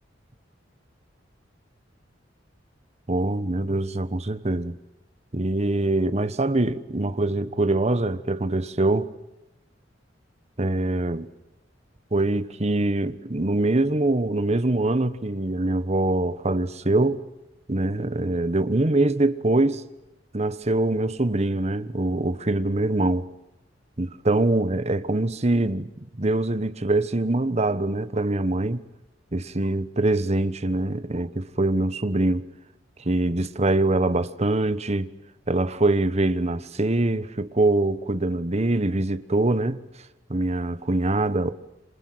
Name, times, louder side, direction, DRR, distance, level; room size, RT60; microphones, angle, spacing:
voice 1, 3.1-4.8 5.3-9.1 10.6-11.3 12.1-17.2 17.7-19.8 20.3-23.3 24.0-25.9 26.2-28.8 29.3-32.4 33.0-35.1 35.5-39.8 40.3-41.5, right 2 dB, 35° right, 1.2 m, -24 dB
28.0 x 27.0 x 7.8 m
head